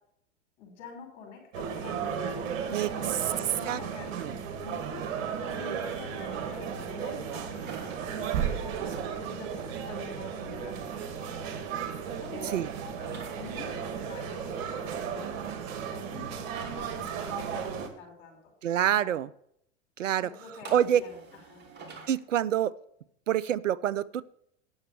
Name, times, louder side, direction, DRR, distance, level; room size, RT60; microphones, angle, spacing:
voice 1, 0.6-8.2 9.2-11.6 12.2-12.6 13.3-15.3 15.9-18.5 18.8-19.1 20.2-21.2 21.5-21.6, left 5 dB, 50° left, -1 dB, 5.5 m, -47 dB
sound 1, 1.5-17.9, right 7 dB, 55° right, 1.8 m, -34 dB
voice 2, 2.7-3.2 3.7-3.8 4.2-4.3 12.5-12.7 18.6-19.3 20.0-20.3 20.7-21.0 22.1-22.7 23.3-24.2, right 10 dB, 80° right, 18 dB, 0.5 m, -26 dB
sound 2, 7.6-9.1 12.1-13.4 16.5-17.9 20.6-22.1, right 4 dB, 25° right, 3.0 m, -47 dB
9.7 x 7.1 x 6.8 m, 0.73 s
figure-of-eight pair, 90°, 37 cm